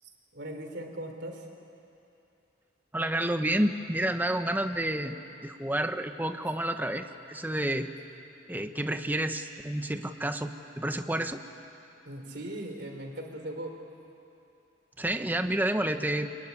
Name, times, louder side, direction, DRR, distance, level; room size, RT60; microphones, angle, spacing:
voice 1, 0.3-1.5 12.0-13.7, right 1 dB, 65° right, 4 dB, 3.7 m, -39 dB
voice 2, 2.9-7.9 8.5-11.4 15.0-16.3, right 1 dB, 10° right, 7 dB, 1.0 m, -30 dB
25.5 x 23.0 x 9.9 m, 2.7 s
head